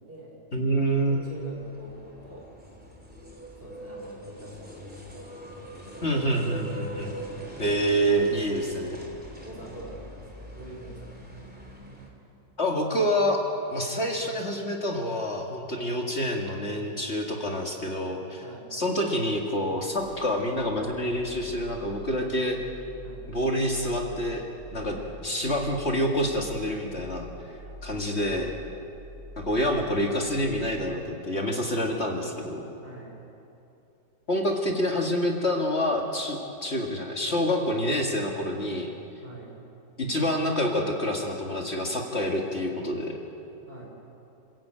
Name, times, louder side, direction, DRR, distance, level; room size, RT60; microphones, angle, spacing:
voice 1, 0.0-0.4 1.0-2.5 3.6-5.4 5.9-6.1 9.4-11.5 11.8-12.0 18.4-18.7 23.0-23.2 24.7-25.1 31.5-31.8 32.8-33.2 39.2-39.5 43.7-43.8, right 1 dB, 30° right, -2 dB, 5.1 m, -45 dB
voice 2, 0.5-1.2 6.0-7.2 7.6-9.0 12.6-13.4 13.7-18.4 18.7-22.6 23.3-24.4 24.7-25.0 25.2-27.3 27.8-28.5 29.4-32.6 34.3-38.9 40.0-43.2, equal, 35° left, 1 dB, 2.2 m, -27 dB
sound 1, 0.9-12.1, equal, 5° right, 3.2 m, -43 dB
sound 2, 20.0-31.4, left 1 dB, 90° right, 3.0 m, -46 dB
27.5 x 15.0 x 8.9 m, 2.8 s
omnidirectional pair, 1.9 m